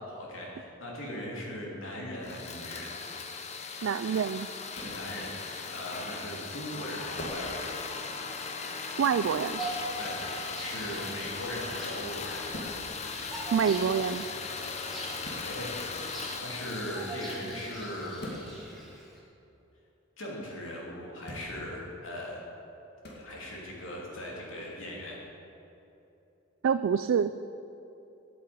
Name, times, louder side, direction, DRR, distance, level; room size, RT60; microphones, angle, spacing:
voice 1, 0.0-2.9 4.7-7.7 9.9-12.5 15.1-18.3 20.2-22.4 23.1-25.2, equal, 75° left, -3 dB, 2.9 m, -39 dB
sound 1, 2.2-18.4, left 4 dB, 35° left, 0.7 m, -38 dB
voice 2, 3.8-4.5 9.0-9.6 13.5-14.3 26.6-27.3, right 7 dB, 75° right, 12 dB, 0.3 m, -26 dB
sound 2, 4.7-5.0 7.1-7.5 9.2-9.5 11.2-11.5 12.5-12.8 15.2-15.5 18.2-18.4 21.2-21.5 23.0-23.2, equal, 50° left, 2.3 m, -41 dB
Bird vocalization bird call bird song, 9.6-19.2, right 1 dB, ahead, 1.8 m, -43 dB
9.5 x 8.2 x 8.4 m, 2.9 s
head